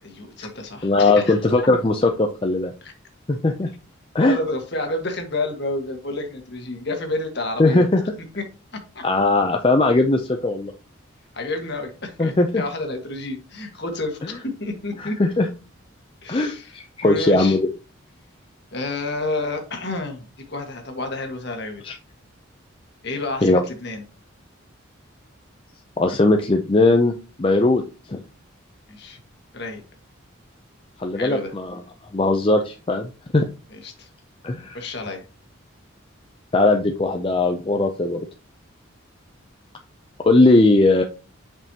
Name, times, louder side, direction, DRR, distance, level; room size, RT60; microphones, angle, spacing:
voice 1, 0.0-1.7 2.8-2.9 4.2-7.9 8.9-9.0 11.3-15.1 16.2-16.8 17.0-17.6 18.7-21.8 23.0-24.0 28.9-29.2 29.5-29.8 31.1-31.5 33.7-34.1 34.7-35.2, left 2 dB, 55° left, 4 dB, 1.6 m, -30 dB
voice 2, 0.8-2.7 3.3-3.7 4.1-4.4 7.6-8.0 9.0-10.7 12.2-12.6 15.0-15.5 16.3-17.7 21.8-21.9 23.4-23.6 26.0-27.1 27.4-27.8 28.1-28.2 31.0-31.8 32.1-33.4 34.4-34.8 36.5-38.2 40.2-41.0, left 2 dB, 25° left, 4 dB, 0.5 m, -19 dB
7.6 x 5.4 x 2.8 m, 0.33 s
head